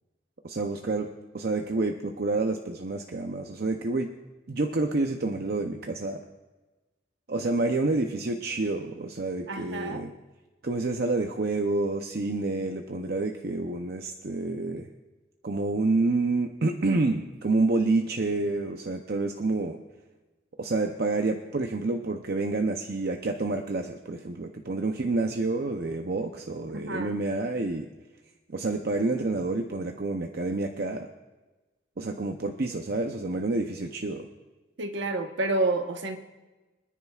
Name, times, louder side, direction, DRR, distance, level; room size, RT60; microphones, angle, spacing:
voice 1, 0.4-1.1 1.3-4.1 4.5-6.2 7.3-10.1 10.6-14.9 15.4-19.8 20.6-27.9 28.5-31.1 32.0-34.3, right 2 dB, 50° right, 4 dB, 0.6 m, -28 dB
voice 2, 9.5-10.0 26.7-27.1 34.8-36.2, right 2 dB, 65° right, 5 dB, 1.1 m, -29 dB
25.0 x 10.0 x 2.4 m, 1.2 s
head